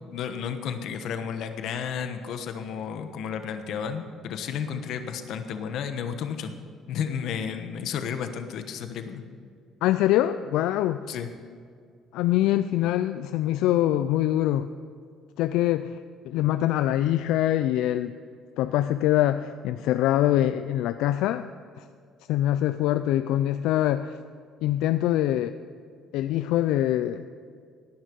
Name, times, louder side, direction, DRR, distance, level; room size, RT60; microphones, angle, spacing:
voice 1, 0.1-6.5 6.9-9.2 11.1-11.3, left 7 dB, 60° left, 8 dB, 1.2 m, -32 dB
voice 2, 9.8-11.1 12.1-14.7 15.4-16.0 16.2-18.1 18.6-21.5 21.8-21.9 22.3-24.2 24.6-25.6 26.1-27.2, left 13 dB, 85° left, 11 dB, 0.4 m, -24 dB
16.5 x 10.0 x 5.3 m, 2.2 s
cardioid pair, 150°, 0 cm